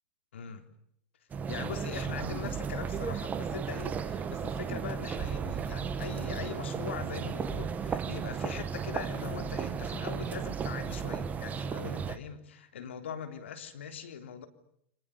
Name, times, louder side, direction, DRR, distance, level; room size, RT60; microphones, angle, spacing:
voice 1, 0.3-0.7 1.5-14.5, left 7 dB, 80° left, 8 dB, 3.6 m, -41 dB
sound 1, 1.3-12.2, right 6 dB, 25° right, 2.1 m, -34 dB
29.5 x 26.0 x 7.1 m, 0.72 s
hypercardioid pair, 105°, 6 cm